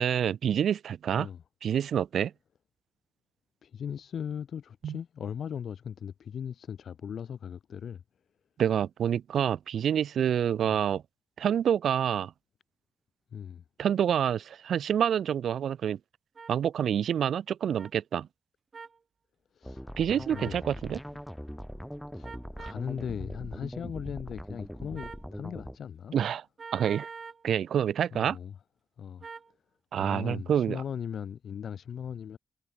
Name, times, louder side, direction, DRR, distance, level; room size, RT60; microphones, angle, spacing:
voice 1, 0.0-1.3 1.6-2.3 4.8-4.9 8.6-11.0 11.4-12.3 13.8-16.0 16.5-18.3 20.0-21.0 26.1-26.4 26.7-27.1 27.4-28.4 29.9-30.8, right 9 dB, 75° right, 0.5 m, -27 dB
voice 2, 3.6-8.0 10.6-10.8 13.3-13.6 19.5-20.6 22.1-26.2 28.1-28.6 29.0-29.3 30.0-32.4, left 8 dB, 70° left, 3.6 m, -38 dB
sound 1, 16.3-16.5 17.8-17.9 18.7-19.0 20.3-20.6 22.2-22.8 24.9-25.3 26.6-27.4 29.2-29.5, right 5 dB, 40° right, 1.6 m, -44 dB
sound 2, 19.6-25.8, equal, ahead, 1.8 m, -41 dB
cardioid pair, 105°, 0 cm